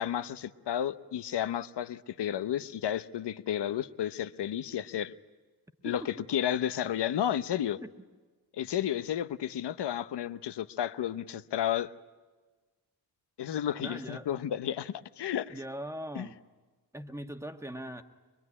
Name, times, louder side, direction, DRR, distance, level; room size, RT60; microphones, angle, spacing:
voice 1, 0.0-5.1 5.8-7.8 8.5-11.9 13.4-15.6 16.1-16.3, left 10 dB, 80° left, 0.9 m, -32 dB
voice 2, 13.8-14.3 15.5-16.4 16.9-18.0, equal, 5° right, 1.3 m, -40 dB
24.0 x 22.5 x 9.8 m
wide cardioid pair, 145°, 41 cm